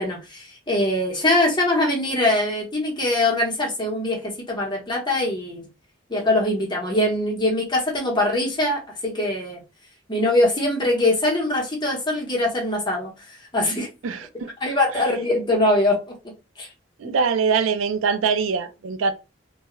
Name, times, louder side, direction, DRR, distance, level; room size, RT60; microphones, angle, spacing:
voice 1, 0.0-5.7 6.1-9.6 10.1-13.9 14.6-16.0 16.6-16.7 17.0-17.1, left 1 dB, 25° left, 0.9 m, -22 dB
voice 2, 14.0-14.5 14.9-15.0 17.0-19.1, right 5 dB, 85° right, 0.4 m, -23 dB
2.2 x 2.2 x 3.0 m
head